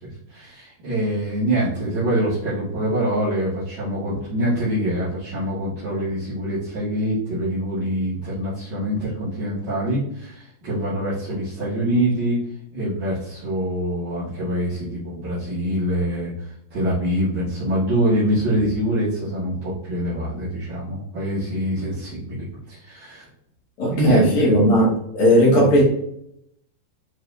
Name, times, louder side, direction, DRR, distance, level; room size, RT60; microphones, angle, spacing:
voice 1, 0.0-12.4 12.7-23.3 23.9-24.5 25.5-25.7, equal, 40° right, -11 dB, 1.9 m, -25 dB
voice 2, 23.8-25.8, equal, 50° left, -4 dB, 3.1 m, -17 dB
9.4 x 4.0 x 2.7 m, 0.75 s
omnidirectional pair, 4.5 m